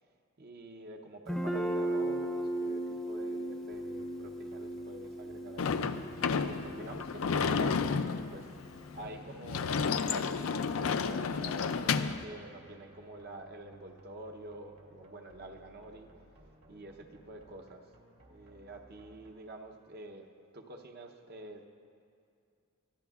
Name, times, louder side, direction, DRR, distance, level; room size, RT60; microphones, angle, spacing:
voice 1, 0.4-8.5 8.8-16.1 16.7-17.9 18.3-21.7, right 2 dB, 50° right, 4 dB, 0.9 m, -48 dB
Guitar, 1.3-9.0, right 1 dB, ahead, 0.7 m, -37 dB
sound 1, 3.7-19.3, right 1 dB, 70° right, 2.9 m, -59 dB
Sliding door / Slam, 5.6-12.2, left 5 dB, 75° left, 0.4 m, -31 dB
21.5 x 14.0 x 2.4 m, 2.4 s
head